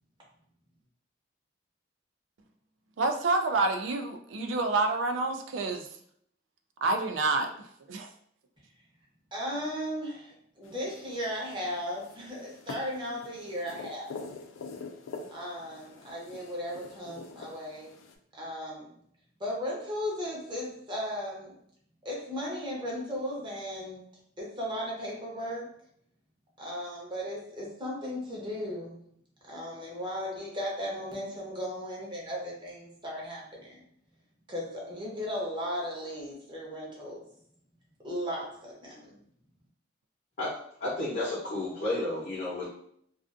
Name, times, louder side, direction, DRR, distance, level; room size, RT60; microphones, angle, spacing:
voice 1, 3.0-5.9 6.8-7.5 7.9-8.1, right 3 dB, 75° right, 0.4 m, -28 dB
voice 2, 9.3-14.2 15.3-17.9 18.3-18.9 19.4-21.6 22.0-24.0 24.4-25.7 26.6-29.0 29.4-33.8 34.5-37.2 38.0-39.2, equal, 25° right, 0.8 m, -36 dB
sound 1, 10.6-18.1, left 4 dB, 85° left, 0.3 m, -46 dB
voice 3, 40.8-42.7, left 2 dB, 55° left, 0.7 m, -31 dB
2.4 x 2.4 x 2.4 m
head